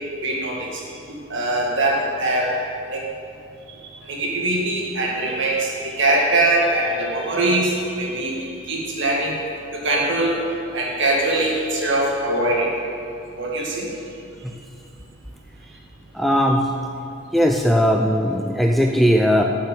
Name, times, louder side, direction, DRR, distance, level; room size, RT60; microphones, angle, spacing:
voice 1, 0.2-0.7 1.3-2.5 2.9-3.0 4.1-9.3 9.7-10.4 10.7-12.7 13.4-13.9, right 2 dB, 55° right, -2 dB, 2.2 m, -22 dB
voice 2, 16.1-16.6 17.3-19.4, equal, ahead, 2 dB, 0.4 m, -18 dB
11.0 x 7.2 x 7.6 m, 2.6 s
head